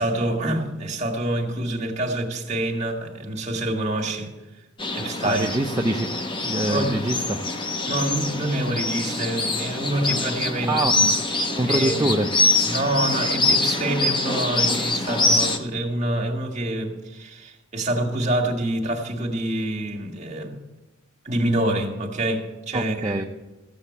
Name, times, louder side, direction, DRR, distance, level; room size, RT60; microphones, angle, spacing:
voice 1, 0.0-4.3 4.9-5.5 6.6-7.2 7.9-11.1 11.4-12.1 12.6-20.6 21.2-23.2, right 1 dB, 35° right, 1.8 m, -26 dB
sound 1, 4.8-15.6, left 2 dB, 25° left, 0.9 m, -24 dB
voice 2, 5.2-6.1 6.4-7.4 10.6-11.0 11.6-12.3 22.7-23.2, right 1 dB, 15° right, 0.6 m, -24 dB
15.0 x 6.9 x 8.4 m
head